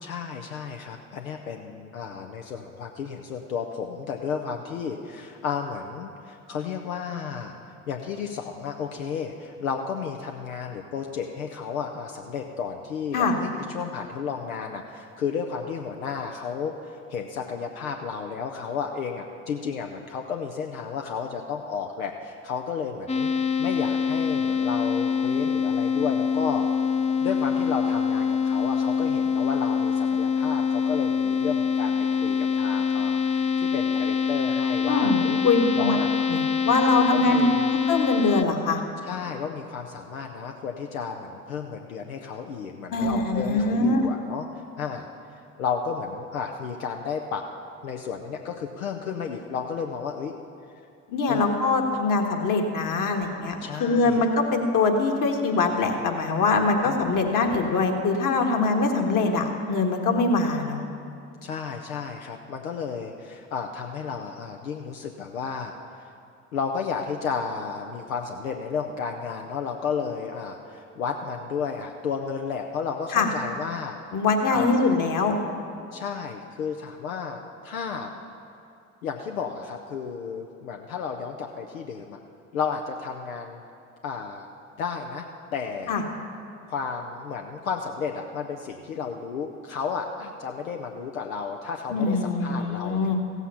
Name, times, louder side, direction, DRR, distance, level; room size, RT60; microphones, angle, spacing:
voice 1, 0.0-7.6 7.9-23.3 23.6-26.7 27.2-35.4 35.8-36.1 37.1-37.6 39.0-45.1 45.6-47.4 47.8-50.3 51.3-51.4 53.6-54.3 56.8-57.1 61.4-66.1 66.5-74.0 74.5-74.9 75.9-78.1 79.0-82.2 82.5-83.6 84.0-84.5 84.8-86.0 86.7-93.1, left 6 dB, 90° left, 3 dB, 0.6 m, -32 dB
sound 1, 23.1-38.4, left 6 dB, 15° left, 0.5 m, -25 dB
voice 2, 34.9-36.0 36.3-37.5 37.8-38.8 42.9-44.0 51.1-60.8 73.1-73.3 74.1-75.4 85.9-86.0 91.9-93.2, left 3 dB, 50° left, 3 dB, 1.6 m, -23 dB
15.5 x 8.2 x 5.6 m, 2.5 s
hypercardioid pair, 55°, 40 cm